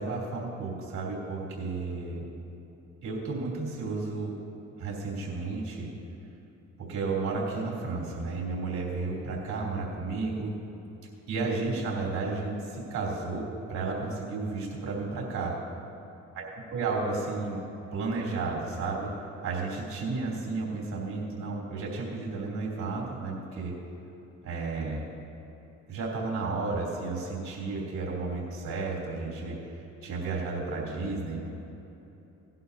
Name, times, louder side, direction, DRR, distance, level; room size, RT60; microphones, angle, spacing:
voice 1, 0.0-2.3 3.0-4.4 4.8-5.9 6.8-10.5 11.3-15.5 16.4-16.5 16.7-17.6 17.9-19.1 19.4-23.7 24.4-25.0 25.9-29.6 30.0-31.5, right 3 dB, 65° right, -4 dB, 3.0 m, -32 dB
17.5 x 11.5 x 2.7 m, 3.0 s
cardioid pair, 90°, 30 cm